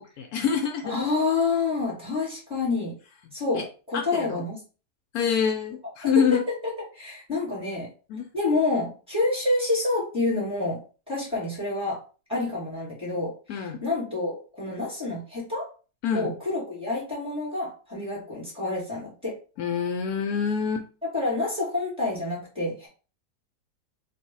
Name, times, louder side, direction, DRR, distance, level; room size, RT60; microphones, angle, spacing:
voice 1, 0.0-1.0 3.6-3.7 3.9-4.4 5.1-6.4 8.1-8.3 13.5-13.8 16.0-16.3 19.6-20.9, left 7 dB, 75° left, 4 dB, 1.1 m, -26 dB
voice 2, 0.8-3.0 3.3-4.6 6.1-7.9 8.3-10.8 11.1-12.0 12.3-15.7 16.1-19.4 21.1-22.9, left 3 dB, 5° right, -7 dB, 2.1 m, -28 dB
3.3 x 2.6 x 4.5 m, 0.36 s
omnidirectional pair, 1.7 m